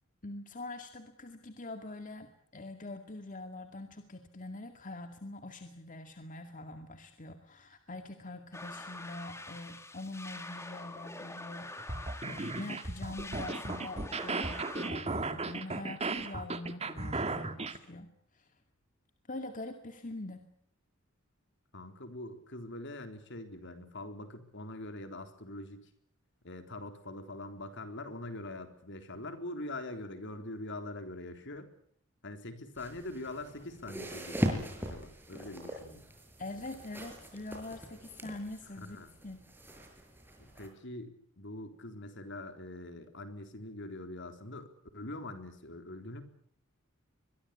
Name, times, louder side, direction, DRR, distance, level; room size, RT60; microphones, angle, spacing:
voice 1, 0.2-18.5 19.3-20.5 36.4-39.0 39.2-39.4, left 2 dB, 40° left, 6 dB, 2.2 m, -44 dB
sound 1, 8.5-14.9, left 2 dB, 15° left, 2.6 m, -45 dB
sound 2, 11.8-17.8, right 3 dB, 30° right, 1.9 m, -36 dB
voice 2, 21.7-25.9 26.4-31.7 32.2-36.0 38.8-39.1 40.4-44.7 44.9-46.2, left 2 dB, 60° left, 8 dB, 3.9 m, -43 dB
sound 3, 32.8-40.7, equal, 10° right, 6.0 m, -40 dB
25.0 x 22.5 x 8.5 m, 0.63 s
head